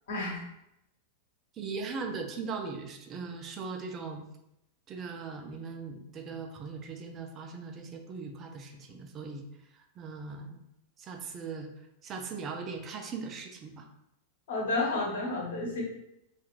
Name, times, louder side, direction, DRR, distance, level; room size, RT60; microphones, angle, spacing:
voice 1, 1.5-4.3 4.9-10.6 11.0-11.7 12.0-13.9, right 4 dB, 30° right, 4 dB, 0.4 m, -39 dB
voice 2, 14.5-15.8, left 2 dB, 60° left, -3 dB, 1.1 m, -31 dB
3.2 x 2.4 x 3.0 m, 0.83 s
figure-of-eight pair, 90°, 0 cm